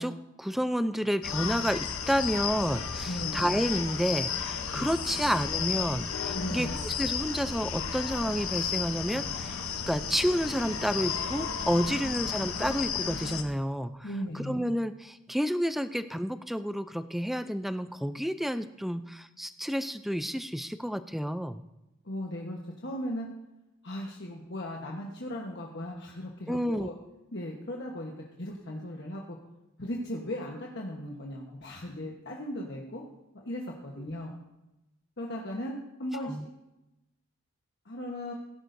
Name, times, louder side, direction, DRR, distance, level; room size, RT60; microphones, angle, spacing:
voice 1, 0.0-13.9 14.3-21.6 26.5-26.9 36.3-36.4, equal, ahead, 11 dB, 0.3 m, -30 dB
sound 1, 1.2-13.4, left 6 dB, 75° left, 0.9 m, -33 dB
voice 2, 3.0-3.5 4.7-4.9 6.3-6.8 14.0-14.6 22.0-23.3 23.8-26.9 27.3-28.1 28.4-29.4 29.8-33.0 33.3-34.3 35.2-36.4 37.8-38.3, left 1 dB, 55° left, -2 dB, 1.2 m, -37 dB
17.0 x 11.0 x 2.7 m, 0.96 s
head